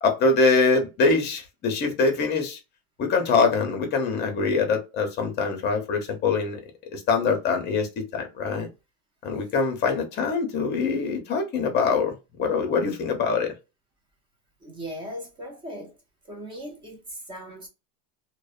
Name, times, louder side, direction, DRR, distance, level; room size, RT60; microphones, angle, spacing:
voice 1, 0.0-2.6 3.0-6.6 6.9-8.7 9.2-13.5, left 4 dB, 25° left, 0.7 m, -24 dB
voice 2, 14.6-15.9 16.3-17.7, equal, 15° right, 0.4 m, -38 dB
2.6 x 2.1 x 2.3 m
supercardioid pair, 150°, 42 cm